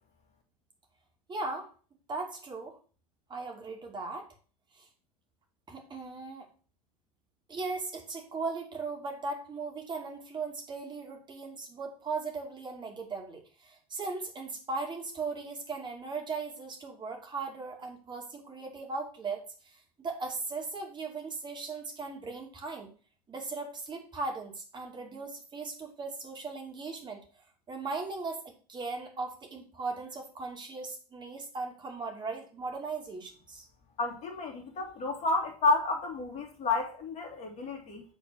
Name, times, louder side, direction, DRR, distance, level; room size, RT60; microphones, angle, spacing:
voice 1, 1.3-1.7 2.1-2.8 3.3-4.2 4.8-4.9 5.7-6.5 7.5-19.4 20.0-22.9 23.3-27.2 27.7-33.6, right 3 dB, 25° right, 2 dB, 2.5 m, -38 dB
voice 2, 34.0-38.0, left 3 dB, 35° left, 3 dB, 2.7 m, -30 dB
8.3 x 4.2 x 6.2 m, 0.39 s
figure-of-eight pair, 80°, 20 cm